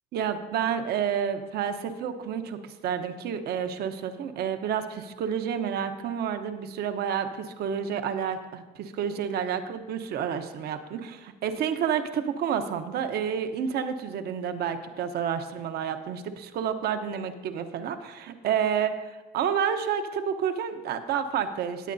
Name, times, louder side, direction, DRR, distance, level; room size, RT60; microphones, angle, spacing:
voice 1, 0.1-21.9, right 8 dB, 70° right, 8 dB, 0.9 m, -30 dB
18.5 x 8.5 x 2.7 m, 1.2 s
cardioid pair, 110°, 17 cm